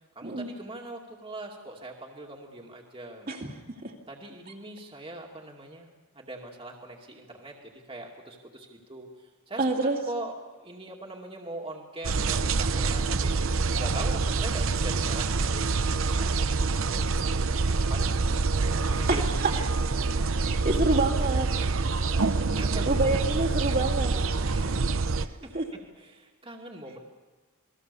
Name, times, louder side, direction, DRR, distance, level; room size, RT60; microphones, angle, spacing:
voice 1, 0.2-3.3 4.1-5.9 6.1-9.6 10.0-10.3 10.6-13.4 13.8-17.1 17.9-18.3 18.9-19.3 21.6-23.5 24.3-24.8 25.4-25.5 26.0-27.0, right 2 dB, 25° right, 0 dB, 2.4 m, -41 dB
voice 2, 9.6-10.0 19.4-19.5 20.4-21.9 22.8-24.1 24.5-24.6 25.1-25.6, right 2 dB, 40° right, -1 dB, 2.5 m, -28 dB
sound 1, 12.0-25.3, right 3 dB, 65° right, 0.8 m, -26 dB
29.0 x 21.0 x 7.0 m, 1.3 s
head